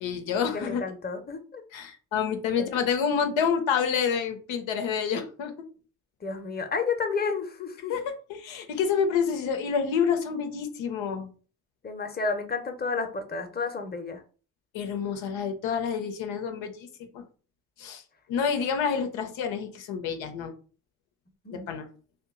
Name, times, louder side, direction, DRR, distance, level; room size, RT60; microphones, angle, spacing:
voice 1, 0.0-0.8 1.7-5.5 7.9-11.3 14.7-16.9 17.1-17.2 17.8-18.0 18.3-20.5 21.5-21.9, left 6 dB, 85° left, 6 dB, 0.7 m, -28 dB
voice 2, 0.5-1.6 2.6-2.8 6.2-7.9 11.8-14.2 21.4-21.7, left 4 dB, 20° left, 6 dB, 0.7 m, -31 dB
2.8 x 2.4 x 3.6 m, 0.39 s
supercardioid pair, 40°, 45 cm